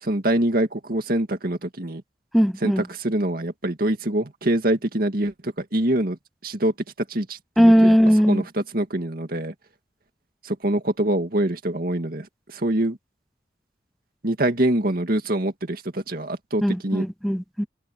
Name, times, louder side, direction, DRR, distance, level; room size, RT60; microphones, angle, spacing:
voice 1, 0.0-2.0 2.6-6.7 7.1-8.0 8.3-9.5 10.4-13.0 14.2-17.1, right 1 dB, 55° right, 2.2 m, -25 dB
voice 2, 2.3-2.9 7.6-8.5 16.6-17.7, equal, ahead, 0.6 m, -18 dB
head